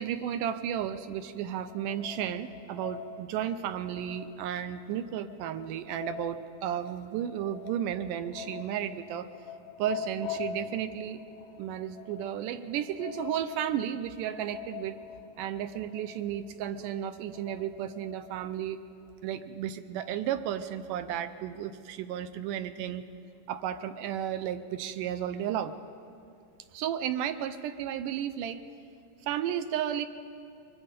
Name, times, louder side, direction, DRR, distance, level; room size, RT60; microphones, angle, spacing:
voice 1, 0.0-9.3 9.8-11.2 11.6-15.0 15.4-18.8 19.2-23.0 23.5-25.8 26.7-28.6 29.2-30.1, right 10 dB, 80° right, 10 dB, 2.2 m, -33 dB
sound 1, 1.7-18.4, left 6 dB, 70° left, 1.4 m, -44 dB
23.5 x 22.0 x 5.3 m, 2.5 s
omnidirectional pair, 3.9 m